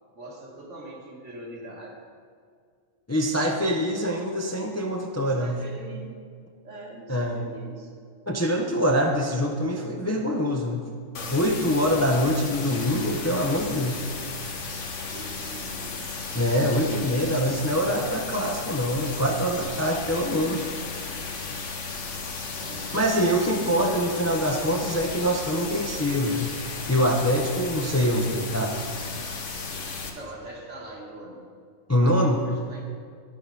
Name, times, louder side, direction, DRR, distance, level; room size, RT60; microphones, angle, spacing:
voice 1, 0.1-2.0 5.2-6.1 6.6-7.9 15.1-16.4 22.5-23.0 23.8-23.9 28.9-29.1 30.1-31.4 32.4-32.8, right 1 dB, 65° right, -2 dB, 2.1 m, -42 dB
voice 2, 3.1-5.6 7.1-7.5 8.3-10.9 11.3-14.0 16.3-20.7 22.9-26.5 26.9-28.8 31.9-32.4, equal, 15° left, 1 dB, 0.6 m, -24 dB
sound 1, 11.1-30.1, left 4 dB, 70° left, 1.4 m, -35 dB
10.5 x 7.5 x 5.4 m, 2.1 s
omnidirectional pair, 1.3 m